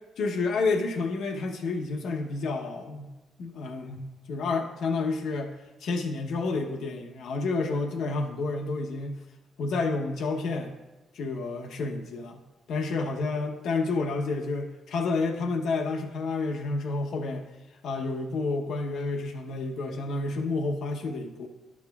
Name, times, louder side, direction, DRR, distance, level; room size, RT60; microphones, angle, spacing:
voice 1, 0.2-3.1 3.4-5.5 5.8-9.2 9.6-10.8 11.1-12.4 12.7-17.4 17.8-21.5, left 3 dB, 70° left, 3 dB, 0.9 m, -30 dB
11.5 x 7.1 x 2.3 m, 1.1 s
cardioid pair, 90°, 0 cm